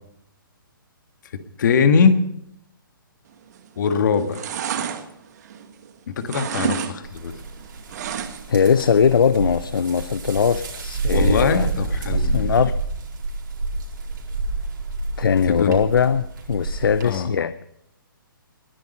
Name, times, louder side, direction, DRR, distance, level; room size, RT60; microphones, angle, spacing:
voice 1, 1.6-2.2 3.8-4.4 6.2-7.3 11.1-12.5 15.5-15.8 17.0-17.3, left 6 dB, 55° left, 9 dB, 1.6 m, -21 dB
sound 1, 3.5-3.8 4.1-5.9 6.2-6.9 7.2-8.6 9.0-9.1, right 7 dB, 50° right, 1.7 m, -29 dB
sound 2, 7.0-17.2, right 3 dB, 65° right, 4.4 m, -28 dB
voice 2, 8.5-11.7 12.1-12.8 15.2-17.6, left 6 dB, 75° left, 15 dB, 0.6 m, -20 dB
20.5 x 11.0 x 5.4 m, 0.76 s
figure-of-eight pair, 135°, 12 cm